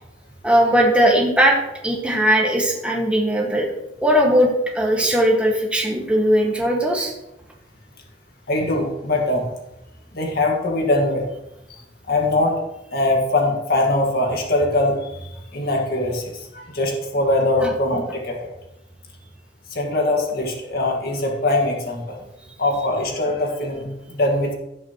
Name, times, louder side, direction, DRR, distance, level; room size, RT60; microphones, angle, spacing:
voice 1, 0.4-1.6 1.8-3.7 4.0-7.1 17.6-17.7, equal, 5° right, -2 dB, 1.8 m, -18 dB
voice 2, 8.5-9.5 10.1-11.3 12.1-12.6 12.9-18.5 19.7-22.2 22.6-24.5, left 2 dB, 55° left, 1 dB, 1.8 m, -22 dB
16.5 x 5.9 x 3.1 m, 0.89 s
head